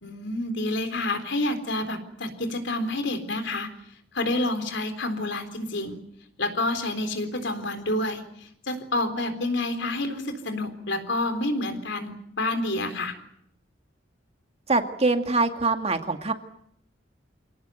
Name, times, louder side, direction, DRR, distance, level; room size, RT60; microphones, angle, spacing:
voice 1, 0.0-3.7 4.1-6.0 6.4-13.1, left 2 dB, 65° left, 9 dB, 3.9 m, -28 dB
voice 2, 14.7-16.3, right 3 dB, 35° right, 6 dB, 2.1 m, -24 dB
27.0 x 18.0 x 9.2 m, 0.72 s
head